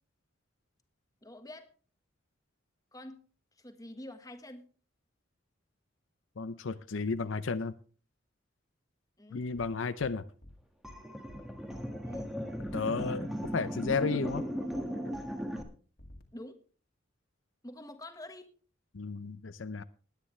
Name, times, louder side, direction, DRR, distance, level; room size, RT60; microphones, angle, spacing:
voice 1, 1.2-1.7 2.9-3.2 3.6-4.7 9.2-9.5 12.0-12.3 16.3-16.6 17.6-18.5, left 1 dB, 20° left, 1.5 m, -46 dB
voice 2, 6.4-7.7 9.3-10.2 12.7-14.4 18.9-19.8, left 4 dB, 80° left, 0.6 m, -33 dB
sound 1, 9.6-9.7 10.0-10.1 10.4-10.6 10.8-11.0 11.3-11.4 11.7-11.8 12.1-12.3 12.6-13.1 13.4-13.6 13.8-14.0 14.3-14.4 14.7-14.8 15.1-15.3 15.6-15.7 16.0-16.2, left 1 dB, 50° left, 2.0 m, -51 dB
sound 2, 10.8-15.6, equal, ahead, 1.6 m, -37 dB
19.5 x 9.7 x 3.2 m
head